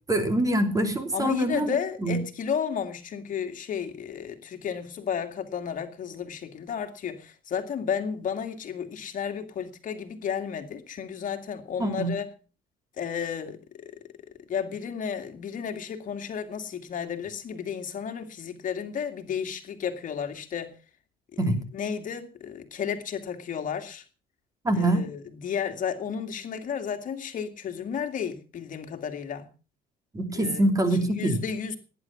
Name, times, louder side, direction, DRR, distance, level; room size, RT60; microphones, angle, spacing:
voice 1, 0.1-1.7 2.0-2.2 11.8-12.1 21.4-21.6 24.6-25.0 30.1-31.4, right 1 dB, 20° right, 3.1 m, -24 dB
voice 2, 1.1-12.3 13.0-13.9 14.5-20.7 21.3-24.0 24.8-29.5 30.3-30.6 31.0-31.8, left 7 dB, 50° left, 2.3 m, -33 dB
18.0 x 10.0 x 6.0 m
cardioid pair, 110°, 17 cm